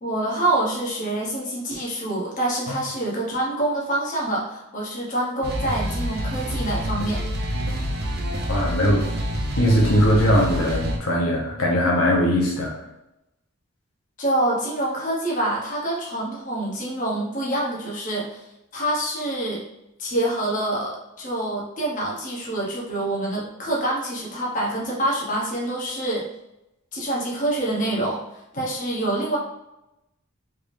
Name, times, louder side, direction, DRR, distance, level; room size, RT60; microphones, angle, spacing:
voice 1, 0.0-7.2 14.2-18.4 18.7-19.6 20.0-26.2 26.9-28.2 28.5-29.4, right 1 dB, 35° left, -4 dB, 0.9 m, -26 dB
sound 1, 5.4-11.0, equal, 50° right, 0.6 m, -27 dB
voice 2, 8.5-9.0 9.6-12.7, equal, 80° left, -2 dB, 0.8 m, -20 dB
3.4 x 3.4 x 2.6 m, 0.91 s
head